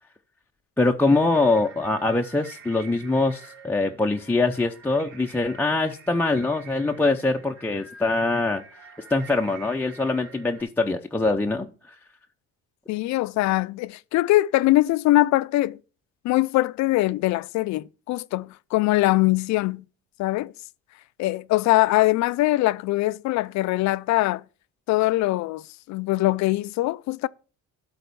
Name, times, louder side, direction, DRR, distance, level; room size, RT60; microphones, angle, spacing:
voice 1, 0.8-8.6 9.1-11.7, left 2 dB, 5° left, 0.6 m, -23 dB
sound 1, 1.0-10.6, right 4 dB, 70° right, 3.5 m, -48 dB
voice 2, 12.9-15.8 16.2-19.9 20.2-20.5 21.2-24.4 24.9-27.3, left 18 dB, 60° left, 0.5 m, -22 dB
12.5 x 4.2 x 6.8 m
cardioid pair, 120°, 31 cm